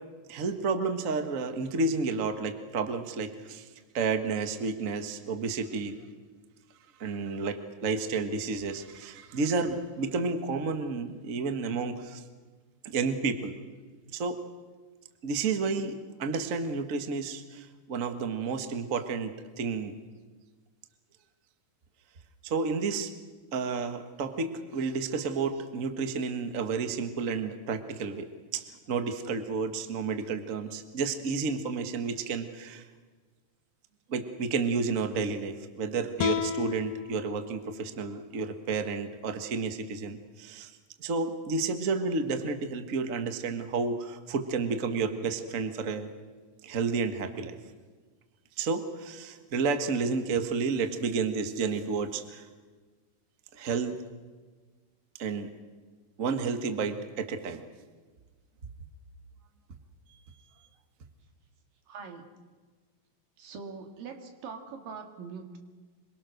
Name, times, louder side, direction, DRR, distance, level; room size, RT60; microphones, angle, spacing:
voice 1, 0.3-3.7 3.9-5.9 7.0-12.2 12.8-13.5 14.1-14.4 15.2-19.9 22.4-23.1 23.5-32.9 34.1-40.7 41.0-46.1 46.6-47.6 48.6-52.4 53.5-54.0 55.2-55.5 56.2-57.6, right 4 dB, 55° right, 7 dB, 0.9 m, -31 dB
sound 1, 36.2-39.4, left 8 dB, 75° left, 2.4 m, -36 dB
voice 2, 61.9-62.3 63.4-65.6, right 5 dB, 75° right, 5 dB, 3.8 m, -42 dB
25.5 x 22.5 x 6.5 m, 1.4 s
omnidirectional pair, 4.0 m